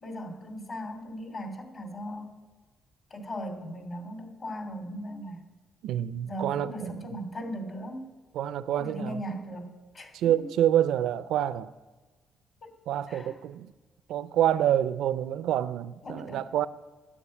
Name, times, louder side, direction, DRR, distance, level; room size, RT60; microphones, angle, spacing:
voice 1, 0.0-2.3 3.1-5.4 6.2-8.1 8.8-10.3 12.6-12.7 13.1-13.3 16.0-16.4, equal, 45° left, 2.6 m, -38 dB
voice 2, 5.8-7.2 8.3-9.2 10.1-11.7 12.9-13.7 14.1-16.7, right 11 dB, 85° right, 0.4 m, -27 dB
10.0 x 8.8 x 8.6 m
cardioid pair, 90°, 0 cm